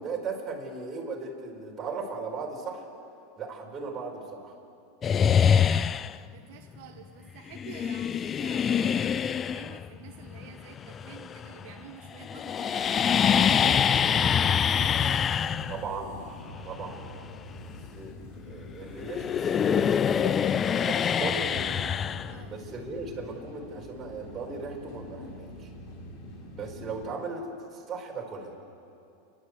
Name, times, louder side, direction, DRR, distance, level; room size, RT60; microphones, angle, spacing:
voice 1, 0.0-2.8 3.4-4.5 15.7-16.2 16.6-17.1 17.9-21.8 22.2-25.7 26.5-28.5, right 4 dB, 25° right, -1 dB, 4.9 m, -37 dB
sound 1, 5.0-6.3 7.5-11.8 12.0-18.7 19.0-22.8, left 8 dB, 25° left, 0.4 m, -25 dB
voice 2, 5.6-15.2 22.3-22.5, right 9 dB, 60° right, 3 dB, 1.4 m, -48 dB
sound 2, 12.8-27.2, left 1 dB, 50° left, 3.9 m, -45 dB
29.5 x 12.0 x 8.3 m, 2.7 s
hypercardioid pair, 120°, 0 cm